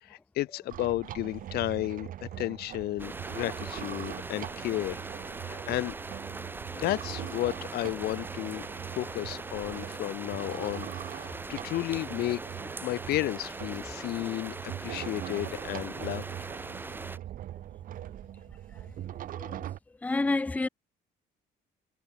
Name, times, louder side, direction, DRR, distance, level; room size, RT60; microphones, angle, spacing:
voice 1, 0.0-5.0 5.4-5.9 6.7-8.7 9.0-12.4 12.8-16.2, left 16 dB, 65° left, 1.3 m, -33 dB
sound 1, 0.7-19.8, right 12 dB, 55° right, 4.2 m, -42 dB
sound 2, 3.0-17.2, right 3 dB, 10° right, 4.3 m, -41 dB
voice 2, 19.3-19.7 20.0-20.7, left 2 dB, 10° left, 0.9 m, -30 dB
cardioid pair, 165°, 17 cm